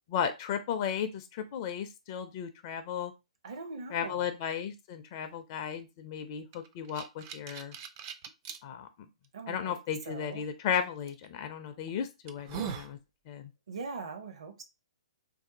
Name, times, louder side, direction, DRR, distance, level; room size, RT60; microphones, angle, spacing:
voice 1, 0.1-3.1 3.9-7.7 8.6-8.9 9.5-13.0 13.3-13.5, left 8 dB, 35° left, 0.4 m, -35 dB
voice 2, 3.4-4.3 9.3-9.8 10.0-10.4 13.7-14.6, right 4 dB, 55° right, 0.8 m, -41 dB
sound 1, 6.5-8.6 9.2-9.3 11.1-11.3 11.8-11.9 12.3-12.9, right 8 dB, 30° right, 0.4 m, -40 dB
3.6 x 2.6 x 2.6 m
figure-of-eight pair, 120°, 4 cm